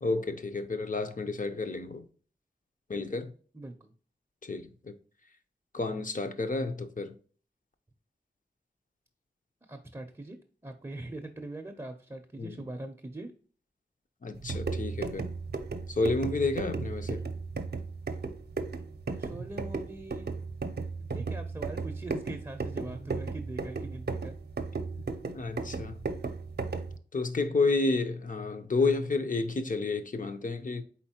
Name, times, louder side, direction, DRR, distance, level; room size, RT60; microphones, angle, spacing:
voice 1, 0.0-2.0 2.9-3.3 4.4-4.9 5.7-7.1 12.4-12.6 14.2-15.3 15.9-17.2 25.0-25.1 25.3-26.0 27.1-30.8, left 3 dB, 45° left, 0.6 m, -30 dB
voice 2, 3.5-3.9 9.6-10.4 10.6-13.3 19.1-20.3 21.0-24.4, right 2 dB, 15° right, 0.6 m, -42 dB
sound 1, 14.3-27.0, right 4 dB, 60° right, 0.6 m, -35 dB
4.3 x 4.0 x 2.8 m
wide cardioid pair, 75°, 19 cm